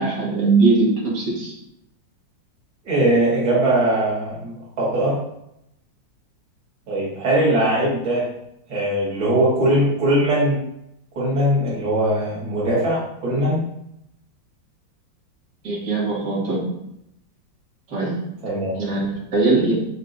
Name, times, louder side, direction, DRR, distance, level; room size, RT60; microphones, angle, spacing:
voice 1, 0.0-1.5 15.6-16.6 17.9-18.2 18.7-19.7, right 3 dB, 55° right, -7 dB, 2.9 m, -20 dB
voice 2, 2.8-5.2 6.9-8.3 8.7-10.6 11.1-13.6 18.4-18.8, right 1 dB, 90° right, -7 dB, 2.9 m, -20 dB
6.3 x 5.5 x 2.7 m, 0.80 s
omnidirectional pair, 2.1 m